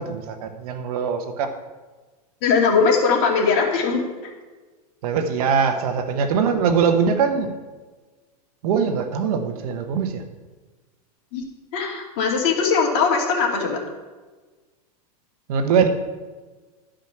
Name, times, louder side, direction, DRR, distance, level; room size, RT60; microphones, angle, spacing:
voice 1, 0.0-1.5 5.0-7.5 8.6-10.2 15.5-15.9, right 6 dB, 70° right, 7 dB, 1.2 m, -22 dB
voice 2, 2.4-4.1 11.3-11.4 11.7-13.8, left 5 dB, 50° left, 0 dB, 2.5 m, -20 dB
12.0 x 5.1 x 5.9 m, 1.3 s
hypercardioid pair, 115°, 20 cm